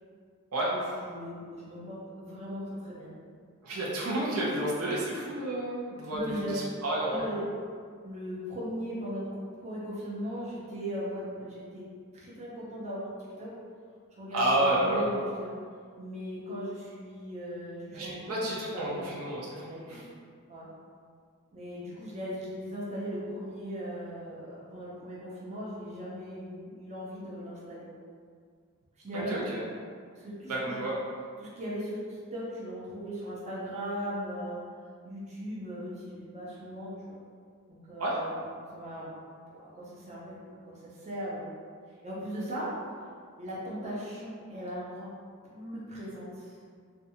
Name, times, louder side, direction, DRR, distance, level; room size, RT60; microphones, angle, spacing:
voice 1, 0.7-3.1 6.1-6.5 7.1-7.5 8.0-11.9 12.1-13.1 13.4-13.5 14.2-15.6 16.0-19.3 19.7-20.0 20.5-20.7 21.5-27.9 29.0-30.8 31.4-34.6 35.0-37.2 37.7-38.4 38.7-39.1 39.5-40.4 40.6-41.5 42.0-42.7 43.4-45.1 45.5-46.6, equal, 30° right, -7 dB, 0.6 m, -38 dB
voice 2, 3.6-7.2 14.3-15.1 17.9-20.0 29.1-29.6 30.5-30.9 38.0-38.2, right 1 dB, 75° right, -5 dB, 0.5 m, -30 dB
2.5 x 2.2 x 2.7 m, 2.1 s
head